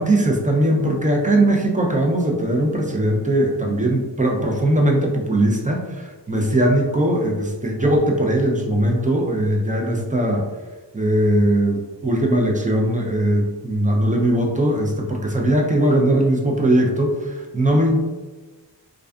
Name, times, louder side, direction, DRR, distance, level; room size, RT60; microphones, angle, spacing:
voice 1, 0.0-10.4 10.9-18.0, right 1 dB, 20° right, 0 dB, 0.4 m, -20 dB
2.5 x 2.3 x 2.3 m, 1.2 s
wide cardioid pair, 45°, 43 cm